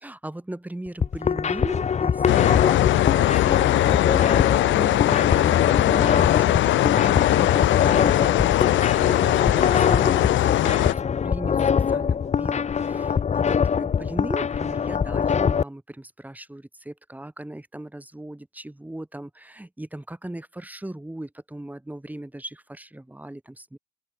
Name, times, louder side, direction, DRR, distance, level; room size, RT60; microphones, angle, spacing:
voice 1, 0.0-23.8, right 1 dB, 10° right, 4.9 m, -38 dB
sound 1, 0.9-15.6, left 7 dB, 35° left, 0.7 m, -23 dB
sound 2, 2.3-10.9, left 15 dB, 75° left, 0.6 m, -20 dB
open air
cardioid pair, 90°, 20 cm